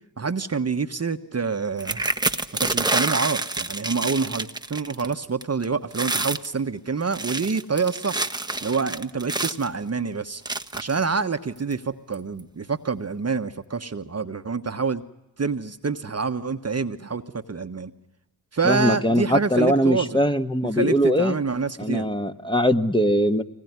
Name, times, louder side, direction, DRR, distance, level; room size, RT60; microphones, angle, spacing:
voice 1, 0.2-2.0 2.6-8.2 8.6-10.4 10.8-15.0 15.4-17.9 18.5-20.2 20.7-22.1, right 5 dB, 30° right, 9 dB, 1.3 m, -27 dB
sound 1, 1.8-5.1 5.4-5.7 5.9-6.5 7.0-9.7 10.5-11.0 11.7-11.8 12.1-12.4, right 2 dB, 10° right, 1.1 m, -27 dB
voice 2, 18.6-21.3 21.8-23.4, equal, 10° left, 7 dB, 1.5 m, -21 dB
24.5 x 20.0 x 9.6 m, 0.99 s
supercardioid pair, 45°, 48 cm